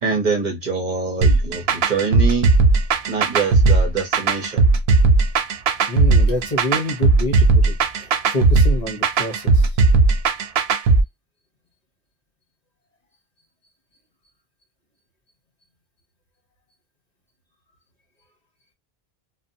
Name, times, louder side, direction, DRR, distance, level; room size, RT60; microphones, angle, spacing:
voice 1, 0.0-2.5 3.1-4.7, right 4 dB, 50° right, 0.8 m, -24 dB
sound 1, 1.2-11.0, right 3 dB, 80° right, 0.8 m, -16 dB
voice 2, 5.9-9.8, left 1 dB, 45° left, 0.9 m, -27 dB
2.7 x 2.1 x 2.6 m
omnidirectional pair, 1.0 m